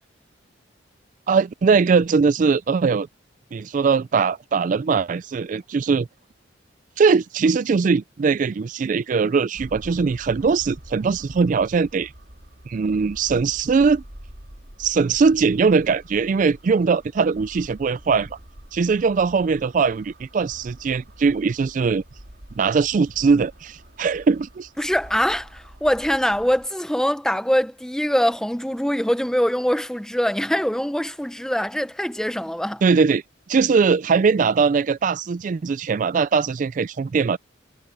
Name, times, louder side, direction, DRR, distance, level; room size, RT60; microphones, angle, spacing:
voice 1, 1.3-3.1 3.5-6.1 7.0-12.1 12.7-14.0 14.8-18.4 18.7-22.0 22.6-24.7 32.8-33.2 33.5-37.4, right 5 dB, 40° right, 0.3 m, -20 dB
sound 1, 9.5-26.7, equal, 55° right, 3.7 m, -45 dB
voice 2, 24.8-32.8, equal, 5° left, 0.7 m, -23 dB
head